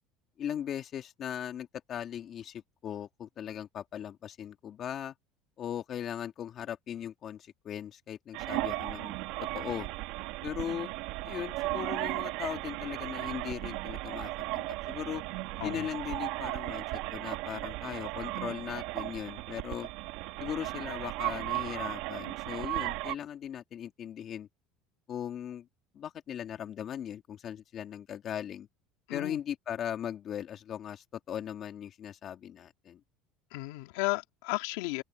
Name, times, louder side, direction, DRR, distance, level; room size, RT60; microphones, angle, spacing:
voice 1, 0.4-5.1 5.6-9.1 9.4-9.9 10.4-10.9 11.2-15.2 15.6-16.8 17.1-19.9 20.4-24.5 25.1-25.7 25.9-28.7 29.1-33.0, left 9 dB, 40° left, 2.6 m, -38 dB
sound 1, 8.3-23.1, right 20 dB, 70° right, 2.3 m, -36 dB
voice 2, 29.1-29.4 33.5-35.0, left 22 dB, 85° left, 2.4 m, -34 dB
cardioid pair, 130°, 0 cm